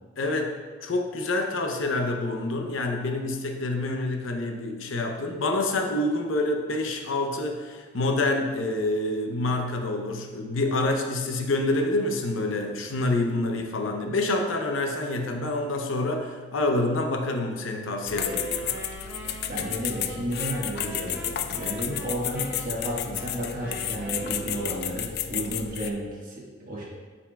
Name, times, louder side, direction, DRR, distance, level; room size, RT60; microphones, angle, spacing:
voice 1, 0.2-18.8, left 2 dB, 85° left, 4 dB, 0.7 m, -27 dB
sound 1, 18.1-25.9, left 11 dB, 55° left, 0.3 m, -32 dB
Wind instrument woodwind instrument, 18.1-25.1, right 2 dB, 10° right, 1.6 m, -40 dB
voice 2, 19.4-26.9, equal, 45° right, -4 dB, 1.6 m, -32 dB
8.4 x 5.3 x 2.3 m, 1.5 s
head